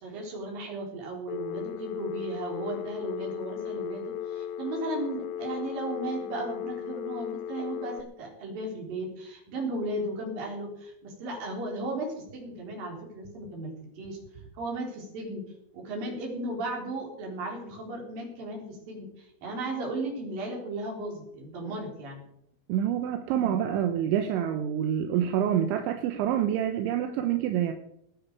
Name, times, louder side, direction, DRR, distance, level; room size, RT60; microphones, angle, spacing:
voice 1, 0.0-14.2 14.6-15.4 15.7-22.2, right 2 dB, 50° right, -1 dB, 5.5 m, -35 dB
Telephone, 1.3-8.0, left 9 dB, 85° left, 2.5 m, -36 dB
voice 2, 22.7-27.7, right 10 dB, 80° right, 6 dB, 3.2 m, -27 dB
19.5 x 10.0 x 4.8 m, 0.76 s
omnidirectional pair, 5.6 m